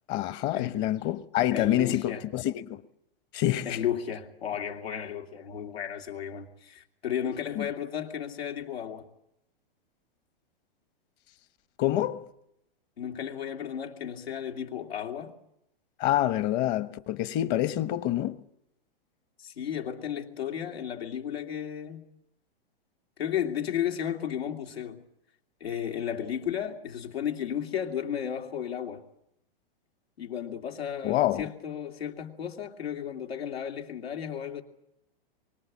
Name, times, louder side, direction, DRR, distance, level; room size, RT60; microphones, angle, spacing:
voice 1, 0.1-2.8 3.3-3.8 7.6-7.7 11.8-12.3 16.0-18.4 31.0-31.4, left 13 dB, 35° left, 1.1 m, -27 dB
voice 2, 1.5-2.2 3.6-9.1 13.0-15.4 19.4-22.1 23.2-25.0 25.6-29.0 30.2-34.6, left 9 dB, 90° left, 2.8 m, -34 dB
25.5 x 24.0 x 7.4 m
hypercardioid pair, 130°, 30 cm